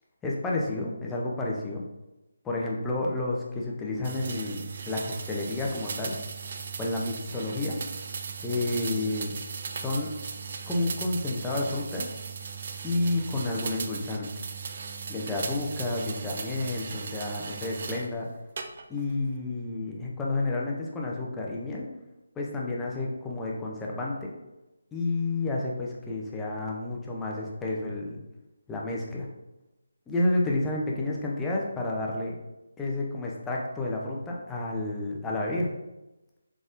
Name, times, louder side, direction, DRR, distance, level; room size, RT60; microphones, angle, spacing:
voice 1, 0.2-1.8 2.4-6.2 6.8-7.8 8.4-9.4 9.8-10.1 10.7-12.2 12.8-14.3 15.1-18.3 18.9-21.9 22.4-24.3 24.9-28.2 28.7-29.3 30.1-32.4 32.8-35.7, left 2 dB, 10° left, -3 dB, 0.5 m, -30 dB
sound 1, 4.0-18.1 18.6-19.1, right 5 dB, 45° right, 0.4 m, -37 dB
4.1 x 3.6 x 2.5 m, 0.99 s
figure-of-eight pair, 160°, 0 cm